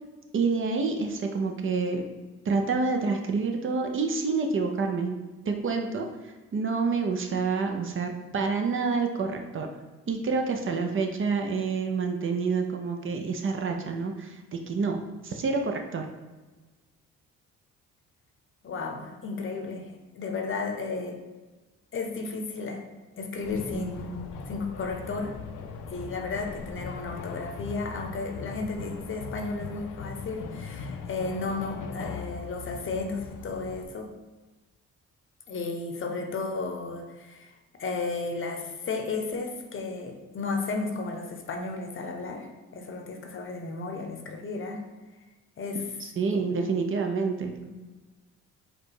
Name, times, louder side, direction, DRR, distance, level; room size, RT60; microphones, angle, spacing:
voice 1, 0.3-2.0 2.5-5.2 5.5-9.7 10.1-15.0 15.2-16.1 46.2-47.6, right 4 dB, 45° right, 4 dB, 0.6 m, -28 dB
voice 2, 18.6-21.2 21.9-22.8 23.2-25.3 25.9-34.1 35.5-37.5 37.8-44.9 45.6-45.9 46.3-46.8 47.6-47.8, left 3 dB, 45° left, 3 dB, 0.8 m, -34 dB
sound 1, 23.4-33.8, left 5 dB, 80° left, 0.5 m, -39 dB
4.7 x 2.3 x 4.7 m, 1.2 s
cardioid pair, 90°, 30 cm